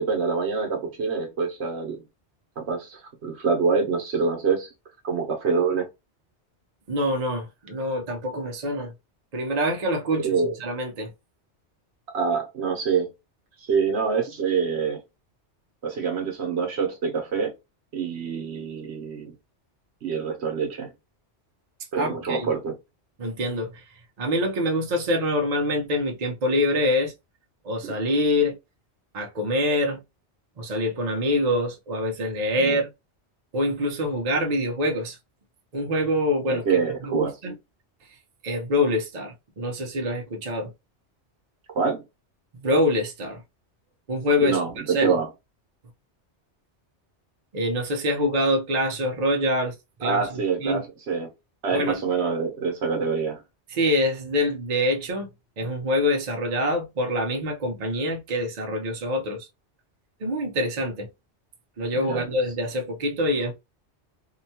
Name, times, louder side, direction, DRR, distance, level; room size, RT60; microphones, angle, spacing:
voice 1, 0.0-2.0 2.6-4.7 5.0-5.9 10.1-10.5 12.1-13.1 13.7-15.0 15.8-17.5 17.9-19.3 20.0-20.9 21.9-22.7 27.8-27.9 32.6-32.8 36.5-37.3 41.7-42.0 44.4-45.3 50.0-51.3 51.6-53.4 61.9-62.3, right 5 dB, 70° right, 1.1 m, -26 dB
voice 2, 6.9-8.9 9.3-10.3 10.6-11.1 21.9-22.5 23.2-23.8 24.2-27.1 27.6-28.6 29.1-30.0 30.6-32.9 33.5-35.2 35.7-36.6 37.0-37.5 38.4-40.7 42.6-43.4 44.1-44.6 44.9-45.2 47.5-49.7 50.0-50.8 51.7-52.0 53.7-55.3 55.6-59.5 60.2-61.1 61.8-63.5, left 1 dB, 45° right, 0.7 m, -25 dB
2.8 x 2.2 x 2.7 m
omnidirectional pair, 1.2 m